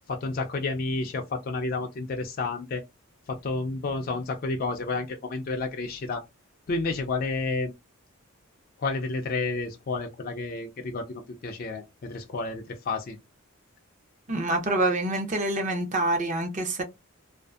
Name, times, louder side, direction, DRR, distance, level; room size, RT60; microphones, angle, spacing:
voice 1, 0.1-2.8 3.3-6.2 6.7-7.7 8.8-13.2, left 3 dB, 45° left, 0.3 m, -30 dB
voice 2, 14.3-16.8, right 2 dB, 35° right, 0.6 m, -26 dB
2.5 x 2.4 x 2.3 m
head